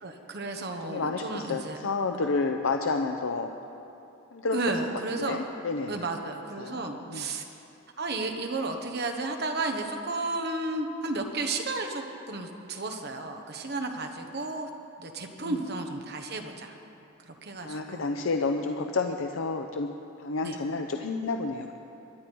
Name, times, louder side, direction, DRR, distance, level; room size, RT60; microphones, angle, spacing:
voice 1, 0.0-1.8 4.5-5.4 5.9-7.4 8.0-14.7 15.0-16.7 17.4-18.1 20.4-20.6, right 2 dB, 55° right, 4 dB, 1.2 m, -33 dB
voice 2, 0.8-3.5 4.3-4.6 5.2-6.1 6.6-7.2 15.4-15.6 17.6-19.9 20.2-21.8, left 3 dB, 80° left, 4 dB, 0.7 m, -30 dB
23.0 x 10.5 x 4.6 m, 2.8 s
head